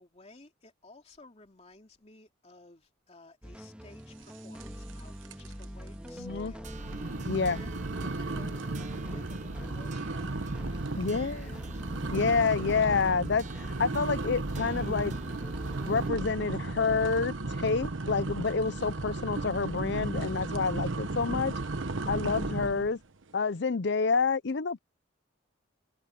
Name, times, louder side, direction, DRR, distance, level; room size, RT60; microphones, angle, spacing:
voice 1, 0.0-7.7 8.0-11.9 23.5-23.6, left 2 dB, 35° left, 2.7 m, -55 dB
sound 1, 3.4-16.3, equal, 5° right, 2.1 m, -43 dB
sound 2, 4.6-5.0 5.2-5.6 6.1-6.2 6.7-22.9, right 2 dB, 75° right, 1.2 m, -35 dB
voice 2, 6.2-6.5 7.3-7.6 11.0-11.6 12.1-13.5 13.8-15.1 15.9-21.5 22.1-23.0 23.3-24.8, left 5 dB, 60° left, 0.6 m, -28 dB
sound 3, 6.6-16.1, right 3 dB, 40° right, 0.8 m, -45 dB
head